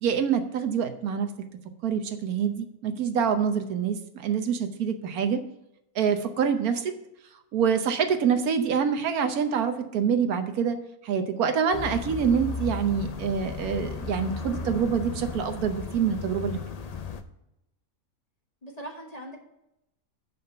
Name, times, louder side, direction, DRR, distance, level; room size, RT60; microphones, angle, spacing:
voice 1, 0.0-1.3 1.8-5.4 5.9-6.9 7.5-10.8 11.0-16.6, right 7 dB, 80° right, 7 dB, 1.3 m, -26 dB
sound 1, 11.7-17.2, left 5 dB, 70° left, 0.3 m, -35 dB
voice 2, 18.6-19.4, right 1 dB, 30° left, 1 dB, 1.3 m, -41 dB
7.0 x 5.7 x 6.6 m, 0.85 s
omnidirectional pair, 1.5 m